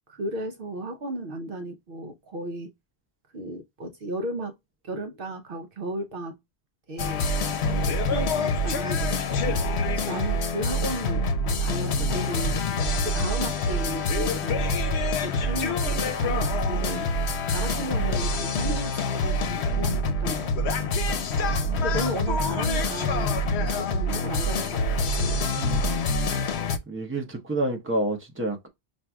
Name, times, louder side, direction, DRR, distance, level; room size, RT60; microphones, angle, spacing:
voice 1, 0.1-2.7 3.3-4.5 4.8-6.4 6.9-7.2 7.7-9.6 10.0-11.3 11.6-12.6 13.0-14.7 15.2-17.1 17.5-20.8 21.8-25.4, right 1 dB, 60° right, 0.8 m, -34 dB
sound 1, 7.0-26.8, left 2 dB, 85° left, 0.9 m, -26 dB
voice 2, 25.6-26.0 26.9-28.7, right 1 dB, 15° right, 0.8 m, -29 dB
5.8 x 2.6 x 2.3 m
omnidirectional pair, 1.1 m